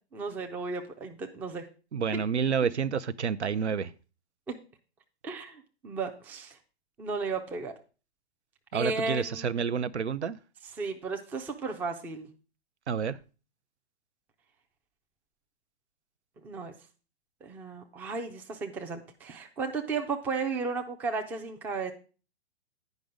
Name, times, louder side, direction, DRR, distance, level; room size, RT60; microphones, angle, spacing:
voice 1, 0.1-1.7 4.5-4.6 5.2-6.6 7.0-7.7 8.7-9.5 10.8-12.3 16.4-16.7 17.4-21.9, right 4 dB, 5° right, 0.4 m, -34 dB
voice 2, 1.9-3.9 8.7-10.4 12.9-13.2, right 6 dB, 90° right, 0.6 m, -29 dB
9.3 x 5.3 x 5.0 m
figure-of-eight pair, 120°, 33 cm